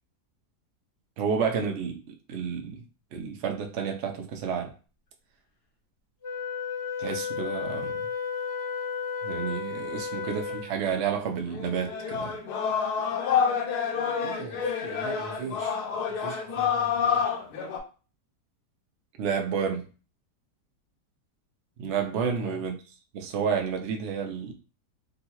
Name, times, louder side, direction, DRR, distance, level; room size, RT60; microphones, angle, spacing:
voice 1, 1.2-2.8 3.1-4.7 7.0-7.9 9.2-12.3 19.2-19.9 21.8-22.8 23.1-24.5, right 6 dB, 65° right, 0.7 m, -30 dB
Wind instrument woodwind instrument, 6.2-10.9, left 6 dB, 50° left, 0.8 m, -33 dB
sound 1, 11.2-11.3 11.5-17.8, left 7 dB, 75° left, 1.1 m, -28 dB
voice 2, 14.2-15.7 16.1-17.2 22.1-22.6, right 4 dB, 85° right, 1.5 m, -41 dB
3.6 x 2.3 x 2.8 m
omnidirectional pair, 1.8 m